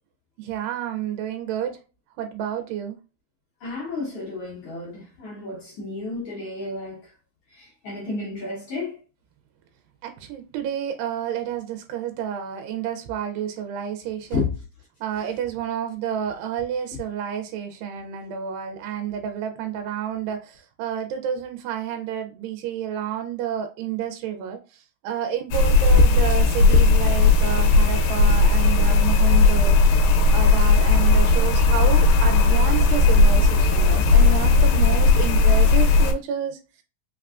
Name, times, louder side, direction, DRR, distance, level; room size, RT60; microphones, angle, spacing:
voice 1, 0.4-1.8 2.2-3.0 10.0-14.5 15.0-29.8 30.3-36.6, right 9 dB, 85° right, 2.2 m, -30 dB
voice 2, 3.6-7.1 7.5-9.0 14.3-14.5, left 3 dB, 60° left, 1.6 m, -31 dB
sound 1, 25.5-36.1, left 3 dB, 85° left, 2.3 m, -16 dB
5.2 x 2.3 x 2.4 m
omnidirectional pair, 3.8 m